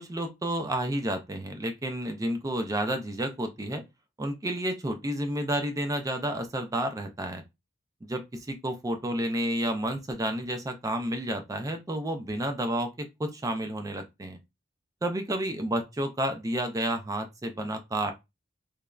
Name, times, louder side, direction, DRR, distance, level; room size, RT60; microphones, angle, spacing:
voice 1, 0.0-3.8 4.2-7.4 8.0-14.4 15.0-18.1, right 1 dB, 15° right, 0.3 m, -31 dB
3.3 x 2.0 x 2.3 m
head